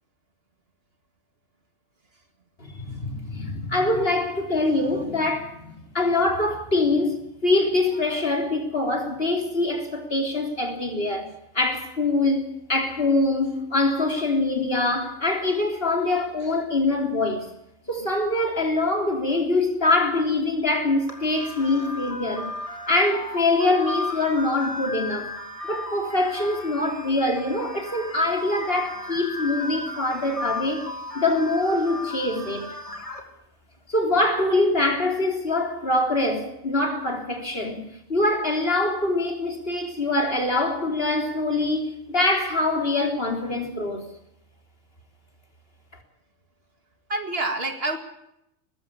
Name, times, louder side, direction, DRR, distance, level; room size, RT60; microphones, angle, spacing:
voice 1, 2.6-17.5 17.9-22.5 22.9-25.4 25.7-32.7 33.9-44.1, left 2 dB, 50° left, 3.9 m, -24 dB
sound 1, 21.1-33.2, left 2 dB, 25° left, 2.9 m, -35 dB
voice 2, 47.1-48.0, right 2 dB, 50° right, 2.3 m, -28 dB
20.0 x 15.5 x 8.6 m
omnidirectional pair, 1.3 m